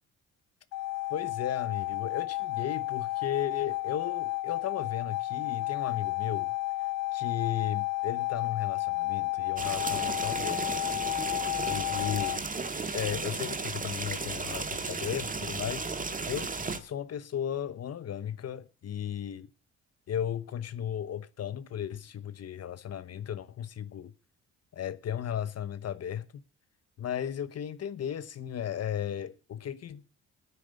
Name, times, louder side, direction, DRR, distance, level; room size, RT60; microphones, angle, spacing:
sound 1, 0.7-12.4, left 18 dB, 80° left, 0.5 m, -32 dB
voice 1, 1.1-6.5 7.1-11.1 11.6-12.5 12.9-15.9 16.3-19.5 20.1-24.1 24.7-26.3 27.0-30.0, left 9 dB, 55° left, 1.1 m, -35 dB
sound 2, 9.6-16.8, right 4 dB, 25° right, 1.9 m, -34 dB
13.5 x 9.7 x 5.2 m
cardioid pair, 90°, 30 cm